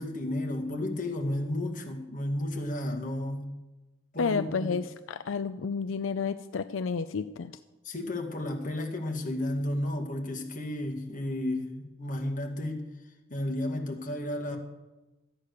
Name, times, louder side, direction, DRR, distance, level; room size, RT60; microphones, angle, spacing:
voice 1, 0.0-3.6 4.1-4.8 7.8-12.9 13.3-14.6, left 1 dB, 40° left, 1 dB, 2.0 m, -32 dB
voice 2, 4.2-7.5, left 5 dB, 85° left, 10 dB, 0.5 m, -31 dB
14.0 x 9.3 x 6.6 m, 1.1 s
head